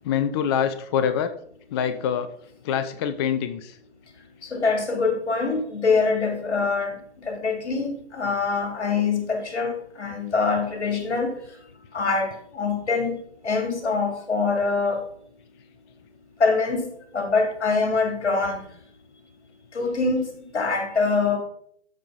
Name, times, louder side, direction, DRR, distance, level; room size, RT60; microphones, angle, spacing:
voice 1, 0.0-1.3 1.7-2.3 2.6-3.8, left 8 dB, 25° left, 10 dB, 0.5 m, -25 dB
voice 2, 4.5-6.9 7.3-11.3 11.9-13.2 13.4-15.0 16.4-16.9 17.1-18.6 19.7-20.2 20.5-21.4, left 4 dB, 75° left, 4 dB, 3.4 m, -24 dB
12.5 x 4.6 x 5.3 m, 0.67 s
figure-of-eight pair, 130°, 34 cm